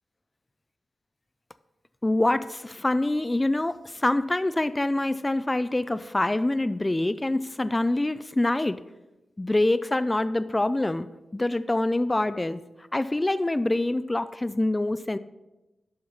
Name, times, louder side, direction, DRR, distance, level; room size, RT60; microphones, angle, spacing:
voice 1, 2.0-8.8 9.4-11.1 11.3-12.6 12.9-15.2, left 2 dB, 20° left, 13 dB, 0.3 m, -25 dB
11.5 x 4.0 x 5.8 m, 1.0 s
cardioid pair, 85°, 0 cm